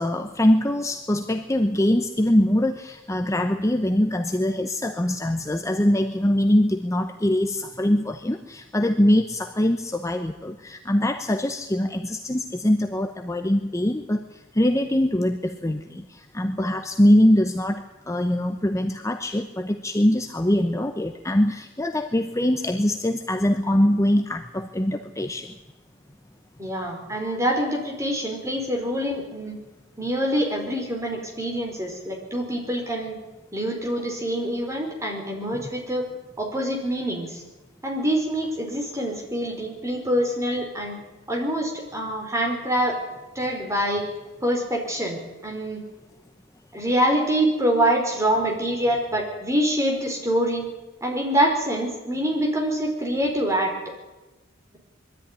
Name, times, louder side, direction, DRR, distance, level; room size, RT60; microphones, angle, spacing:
voice 1, 0.0-25.5, left 1 dB, 15° left, 5 dB, 0.9 m, -23 dB
voice 2, 26.6-29.6 30.0-33.2 33.5-36.0 36.4-37.4 37.8-41.0 41.3-43.0 43.3-44.1 44.4-45.8 46.7-50.7 51.0-53.7, equal, 15° right, 0 dB, 4.8 m, -25 dB
22.0 x 13.5 x 9.9 m, 1.1 s
head